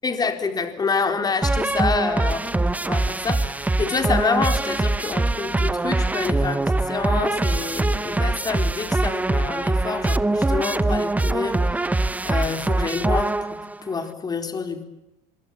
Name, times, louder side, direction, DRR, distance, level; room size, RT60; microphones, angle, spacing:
voice 1, 0.0-11.9 12.2-14.8, left 5 dB, 20° left, 7 dB, 4.1 m, -27 dB
sound 1, 1.4-13.8, right 2 dB, 10° right, 1.0 m, -23 dB
26.5 x 23.5 x 8.7 m, 0.99 s
cardioid pair, 125°, 17 cm